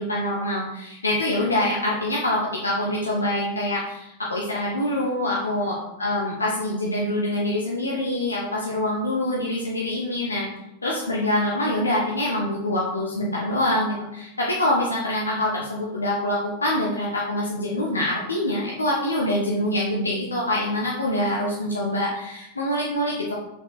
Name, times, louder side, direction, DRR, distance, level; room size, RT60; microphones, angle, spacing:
voice 1, 0.0-10.5 10.8-23.4, left 1 dB, 80° left, -4 dB, 1.3 m, -25 dB
7.3 x 5.6 x 4.3 m, 0.84 s
figure-of-eight pair, 90°, 0 cm